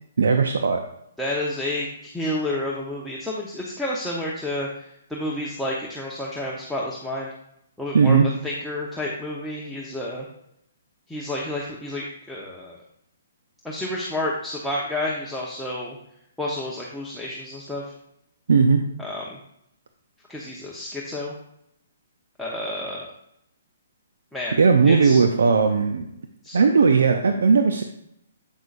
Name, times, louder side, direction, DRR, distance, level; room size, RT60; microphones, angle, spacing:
voice 1, 0.2-0.8 7.9-8.3 18.5-18.8 24.6-26.1 26.5-27.8, right 5 dB, 70° right, 5 dB, 0.6 m, -17 dB
voice 2, 1.2-7.3 7.8-8.2 8.4-10.3 11.1-12.8 13.6-16.0 16.4-17.9 19.0-19.4 20.3-21.3 22.4-23.1 24.3-24.6 24.8-25.2 26.4-26.9, left 1 dB, ahead, -5 dB, 1.0 m, -30 dB
8.3 x 6.0 x 2.6 m, 0.77 s
figure-of-eight pair, 130°, 0 cm